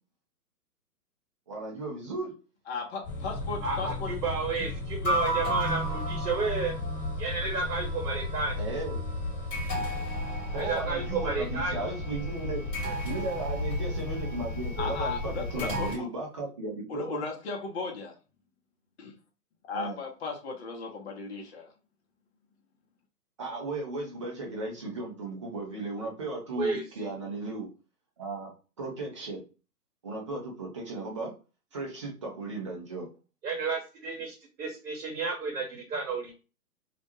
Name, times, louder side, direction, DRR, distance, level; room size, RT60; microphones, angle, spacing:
voice 1, 1.5-2.3 8.5-9.0 10.5-12.6 13.0-17.2 19.7-20.0 23.4-27.7 28.2-29.4 30.0-31.3 31.7-33.1, right 2 dB, 20° right, -2 dB, 0.4 m, -36 dB
voice 2, 2.7-4.1 14.8-16.1 16.9-18.1 19.0-19.1 19.6-21.7, left 4 dB, 45° left, 1 dB, 0.7 m, -36 dB
sound 1, 3.0-16.0, left 1 dB, 25° left, 1.3 m, -33 dB
voice 3, 3.6-6.8 7.2-8.6 10.5-12.0 12.8-13.0 26.6-26.8 33.4-36.3, right 4 dB, 70° right, 0 dB, 0.9 m, -32 dB
2.5 x 2.1 x 2.8 m, 0.33 s
hypercardioid pair, 130°, 47 cm